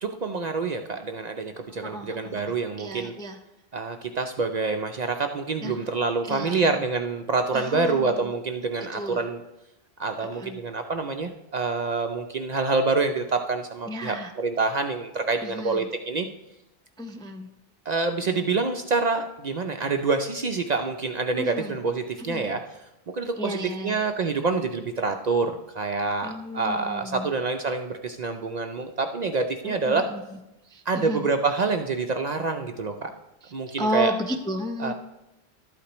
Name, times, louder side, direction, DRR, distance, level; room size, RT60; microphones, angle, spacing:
voice 1, 0.0-3.1 3.7-9.4 10.0-16.3 17.9-22.6 23.1-30.1 30.9-33.1 33.5-34.1 34.8-34.9, right 4 dB, 55° right, 5 dB, 0.5 m, -27 dB
voice 2, 1.8-3.4 5.6-5.9 6.3-6.6 7.5-8.3 8.9-9.2 10.2-10.6 13.9-14.3 15.4-15.9 17.0-17.5 21.4-21.7 22.2-22.5 23.4-24.0 26.2-27.3 29.6-30.2 30.7-31.3 33.8-34.9, equal, 5° left, 3 dB, 0.4 m, -33 dB
12.0 x 8.4 x 3.0 m, 0.91 s
omnidirectional pair, 1.1 m